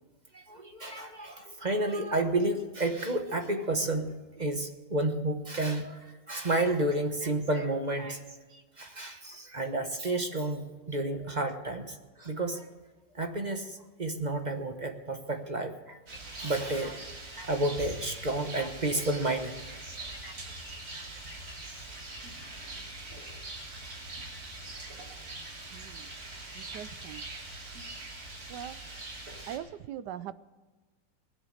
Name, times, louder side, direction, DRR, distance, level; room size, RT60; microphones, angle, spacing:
voice 1, 0.3-8.2 8.5-12.7 13.1-16.0 16.4-17.0 17.4-20.3 20.9-21.0 21.7-21.8, right 2 dB, 30° right, 6 dB, 1.0 m, -31 dB
Rain, 16.1-29.6, right 2 dB, 55° right, 3.1 m, -43 dB
voice 2, 25.7-26.1 26.5-27.2 28.5-28.8 29.5-30.4, right 10 dB, 75° right, 15 dB, 1.2 m, -41 dB
20.5 x 8.1 x 6.4 m, 1.3 s
omnidirectional pair, 2.0 m